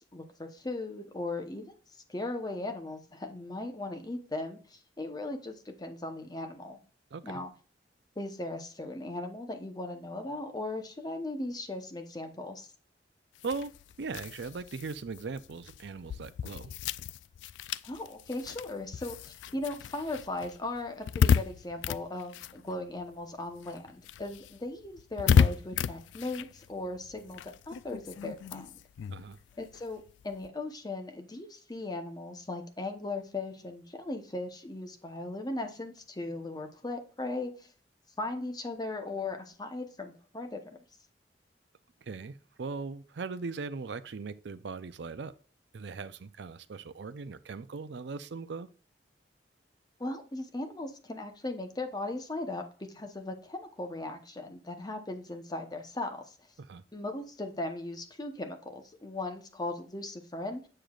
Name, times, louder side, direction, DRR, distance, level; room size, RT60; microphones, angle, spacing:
voice 1, 0.1-6.8 7.2-7.5 8.2-12.7 17.8-28.7 29.6-37.7 38.2-40.8 50.0-56.3 56.9-60.6, left 2 dB, 25° left, 0.9 m, -38 dB
sound 1, 13.4-23.3 23.5-30.5, left 7 dB, 90° left, 0.3 m, -32 dB
voice 2, 14.0-16.7 29.1-29.4 42.0-45.3 45.7-48.7 56.6-56.8, right 4 dB, 70° right, 0.5 m, -39 dB
7.6 x 6.8 x 2.4 m
head